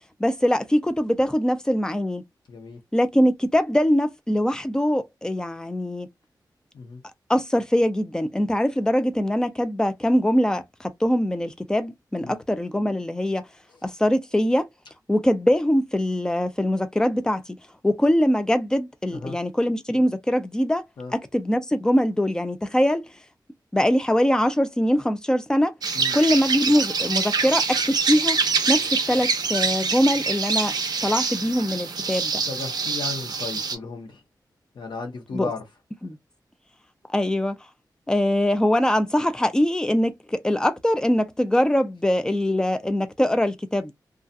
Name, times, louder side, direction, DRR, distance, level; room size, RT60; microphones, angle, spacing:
voice 1, 0.2-2.2 2.9-6.1 7.3-13.4 13.8-14.7 15.1-17.4 17.8-20.8 21.1-23.0 23.7-25.7 26.1-28.4 28.7-30.7 31.0-32.4 35.3-35.5 36.0-36.2 37.1-37.6 38.1-43.9, equal, 10° left, 0.4 m, -22 dB
voice 2, 2.5-2.8 6.7-7.0 12.2-12.4 13.7-13.8 19.1-19.4 21.0-21.1 25.9-26.2 32.4-34.2 34.7-35.6, left 4 dB, 90° left, 0.9 m, -35 dB
sound 1, 25.8-33.8, right 5 dB, 60° right, 0.5 m, -25 dB
2.3 x 2.3 x 2.6 m
wide cardioid pair, 165°, 8 cm